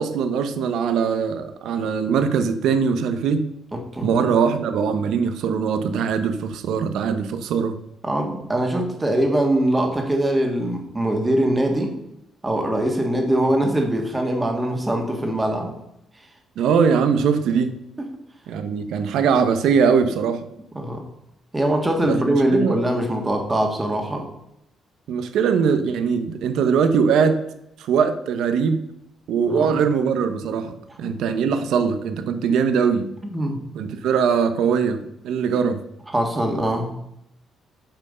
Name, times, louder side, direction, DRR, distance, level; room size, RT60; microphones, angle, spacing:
voice 1, 0.0-3.5 4.0-7.8 16.6-17.7 18.5-20.4 22.0-22.8 25.1-27.4 27.8-28.8 29.3-33.1 33.7-35.8, right 6 dB, 75° right, 9 dB, 0.8 m, -21 dB
voice 2, 3.7-4.1 8.0-12.0 12.4-15.8 20.7-21.0 21.5-24.3 29.5-29.7 31.0-31.1 33.2-33.6 36.1-37.0, right 1 dB, 15° right, 3 dB, 1.6 m, -22 dB
8.8 x 5.5 x 5.4 m, 0.79 s
cardioid pair, 155°, 0 cm